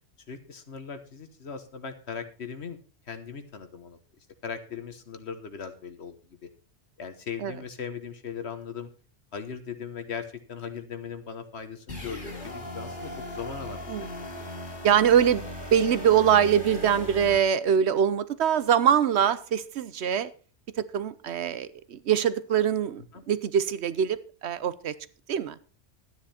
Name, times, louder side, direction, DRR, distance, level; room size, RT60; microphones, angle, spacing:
voice 1, 0.3-2.8 3.1-4.0 4.4-6.1 6.4-6.5 7.0-8.9 9.3-14.5 23.1-23.2, left 6 dB, 65° left, 1.5 m, -39 dB
sound 1, 11.9-17.4, left 1 dB, 45° left, 2.3 m, -38 dB
voice 2, 14.8-15.4 15.7-20.3 20.8-24.9 25.3-25.6, right 8 dB, 70° right, 1.0 m, -23 dB
12.5 x 9.6 x 4.3 m
omnidirectional pair, 1.2 m